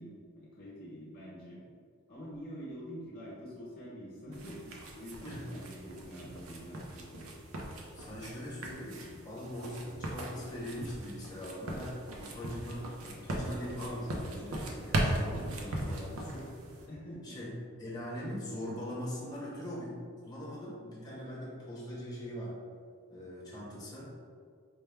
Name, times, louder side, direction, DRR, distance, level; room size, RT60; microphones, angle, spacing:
voice 1, 0.0-1.6 2.1-7.4 16.9-17.4, equal, 45° left, -7 dB, 0.7 m, -46 dB
sound 1, 4.3-16.9, right 1 dB, 85° right, 0.6 m, -39 dB
voice 2, 7.9-16.5 17.2-17.5 17.8-19.9 20.2-22.5 23.1-24.1, equal, 20° left, -7 dB, 0.9 m, -41 dB
4.5 x 2.2 x 3.4 m, 2.1 s
head